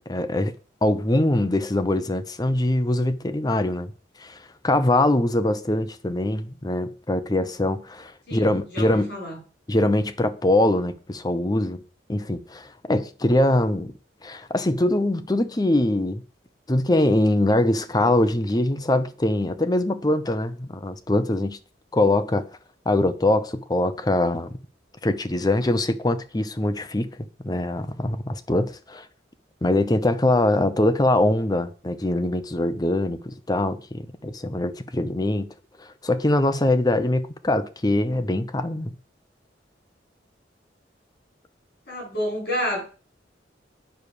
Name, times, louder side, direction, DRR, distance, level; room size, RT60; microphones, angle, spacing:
voice 1, 0.1-0.5 0.8-3.9 4.2-9.1 9.7-11.8 12.1-13.9 14.2-16.2 16.7-21.6 21.9-22.5 22.9-24.6 25.0-27.1 27.4-29.1 29.6-35.5 35.8-38.9, left 1 dB, 20° left, 0.7 m, -23 dB
voice 2, 8.3-9.4 41.9-42.8, equal, 55° left, 6.3 m, -29 dB
9.1 x 4.8 x 6.9 m
head